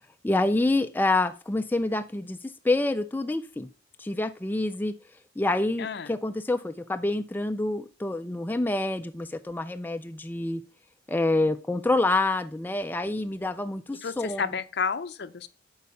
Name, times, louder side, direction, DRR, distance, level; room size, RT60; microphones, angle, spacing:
voice 1, 0.2-3.7 4.0-4.9 5.4-10.6 11.1-14.4, left 2 dB, 10° left, 0.3 m, -27 dB
voice 2, 5.8-6.2 14.0-15.5, left 6 dB, 60° left, 0.5 m, -31 dB
8.3 x 4.7 x 5.3 m
head